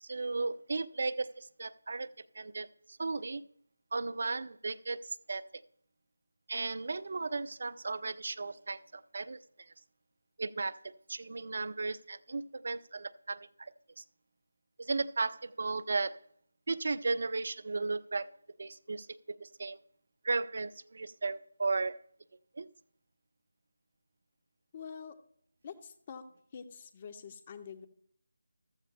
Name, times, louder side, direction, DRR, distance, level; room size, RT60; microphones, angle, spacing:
voice 1, 0.0-2.1 2.3-3.4 3.9-5.4 6.5-9.4 10.4-10.8 11.1-13.7 14.0-14.1 14.8-16.2 16.7-18.3 18.6-19.1 19.4-19.8 20.2-22.0 22.6-22.7, right 3 dB, 55° right, 17 dB, 0.5 m, -35 dB
voice 2, 24.7-25.2 25.6-26.3 26.5-27.9, left 6 dB, 30° left, 10 dB, 1.1 m, -46 dB
14.5 x 13.0 x 2.2 m, 0.65 s
figure-of-eight pair, 165°, 0 cm